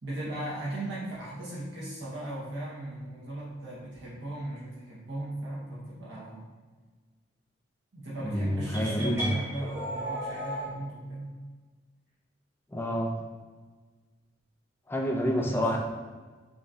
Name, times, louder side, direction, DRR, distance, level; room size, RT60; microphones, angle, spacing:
voice 1, 0.0-6.5 7.9-11.4 15.4-15.7, right 1 dB, 70° right, -7 dB, 0.9 m, -37 dB
voice 2, 8.2-9.3 12.7-13.2 14.9-15.8, equal, 10° left, 0 dB, 0.4 m, -28 dB
sound 1, 8.7-10.7, equal, 15° right, 1.2 m, -35 dB
5.1 x 2.7 x 2.3 m, 1.4 s
head